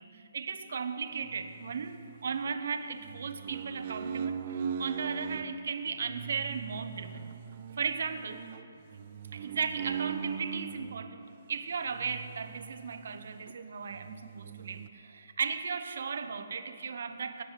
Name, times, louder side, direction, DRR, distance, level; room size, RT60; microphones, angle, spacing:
voice 1, 0.0-7.3 7.8-8.5 9.3-11.2 11.5-17.4, right 5 dB, 55° right, 9 dB, 1.0 m, -36 dB
sound 1, 1.3-2.5 3.0-5.5 6.0-11.1 11.9-13.1 13.5-13.6 13.9-14.9, right 7 dB, 30° right, 0.5 m, -39 dB
17.5 x 9.8 x 5.8 m, 2.7 s
hypercardioid pair, 170°, 0 cm